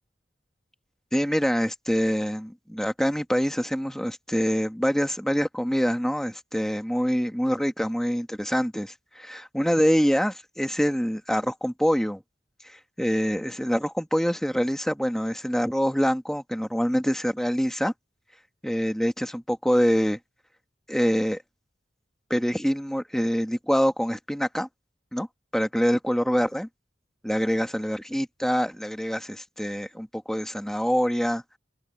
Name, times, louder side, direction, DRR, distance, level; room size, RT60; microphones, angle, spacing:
voice 1, 1.1-12.2 12.6-17.9 18.6-20.2 20.9-21.4 22.3-24.7 25.1-25.3 25.5-26.7 27.2-31.4, equal, 5° left, 1.7 m, -25 dB
open air
head